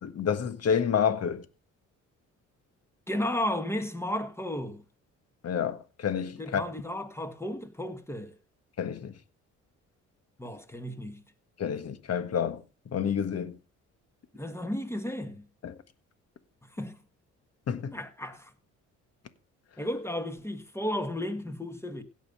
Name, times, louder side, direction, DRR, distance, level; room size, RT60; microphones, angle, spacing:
voice 1, 0.0-1.4 5.4-6.6 8.8-9.1 11.6-12.6 12.9-13.6 15.6-15.7 17.7-18.0, left 7 dB, 55° left, 1.6 m, -29 dB
voice 2, 3.1-4.8 6.4-8.3 10.4-11.2 14.3-15.5 16.6-17.0 17.7-18.5 19.8-22.0, left 1 dB, 10° left, 1.8 m, -34 dB
16.5 x 5.6 x 5.5 m
cardioid pair, 90°, 30 cm